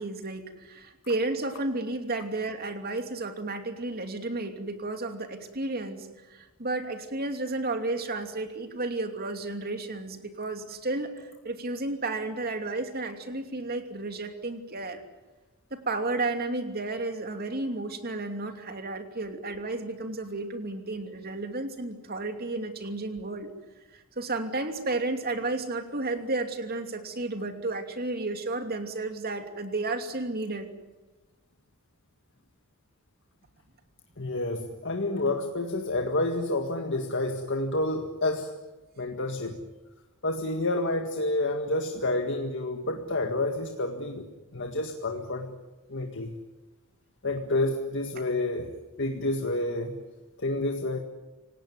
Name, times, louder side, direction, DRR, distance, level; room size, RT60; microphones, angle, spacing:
voice 1, 0.0-15.0 15.7-23.5 23.9-30.7, right 2 dB, 45° right, 6 dB, 2.8 m, -32 dB
voice 2, 34.2-38.5 39.0-39.6 40.2-44.3 44.5-45.5 45.9-46.4 47.2-48.7 49.0-49.9 50.4-51.0, left 2 dB, 60° left, 4 dB, 1.8 m, -29 dB
28.0 x 18.0 x 9.6 m, 1.2 s
head